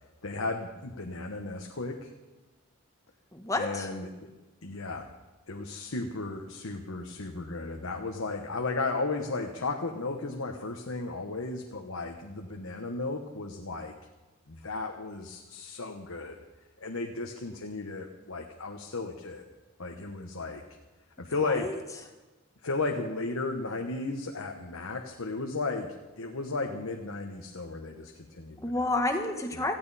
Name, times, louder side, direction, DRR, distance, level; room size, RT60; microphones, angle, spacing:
voice 1, 0.2-2.1 3.5-4.3 4.6-5.1 5.5-13.9 14.5-16.3 16.8-19.4 19.8-20.6 21.2-21.7 22.6-28.8, left 3 dB, 75° left, 2 dB, 1.2 m, -34 dB
voice 2, 3.3-3.9 21.4-21.8 28.6-29.7, left 2 dB, 15° left, 4 dB, 1.4 m, -30 dB
18.0 x 14.5 x 4.2 m, 1.2 s
head